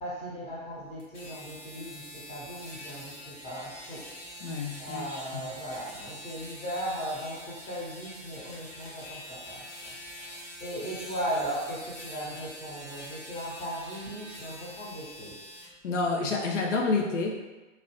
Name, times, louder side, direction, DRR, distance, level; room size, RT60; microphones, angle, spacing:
voice 1, 0.0-15.3, equal, 15° left, -6 dB, 0.9 m, -37 dB
sound 1, 1.0-15.7, left 1 dB, 50° left, 1.2 m, -45 dB
voice 2, 4.4-5.0 5.3-5.4 15.8-17.3, left 3 dB, 75° left, 0 dB, 0.5 m, -28 dB
2.9 x 2.4 x 3.0 m, 1.2 s
figure-of-eight pair, 100°, 37 cm